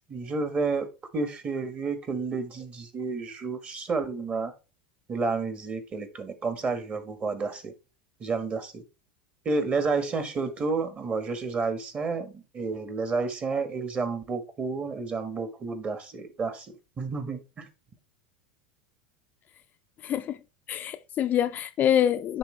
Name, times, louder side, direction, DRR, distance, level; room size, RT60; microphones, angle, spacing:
voice 1, 0.1-0.9 1.1-4.5 5.1-7.7 8.2-8.8 9.4-16.7 17.0-17.7, right 4 dB, 30° right, 1.4 m, -30 dB
voice 2, 20.0-20.4 20.7-22.4, left 10 dB, 40° left, 0.4 m, -25 dB
10.0 x 3.5 x 3.2 m
hypercardioid pair, 90°, 5 cm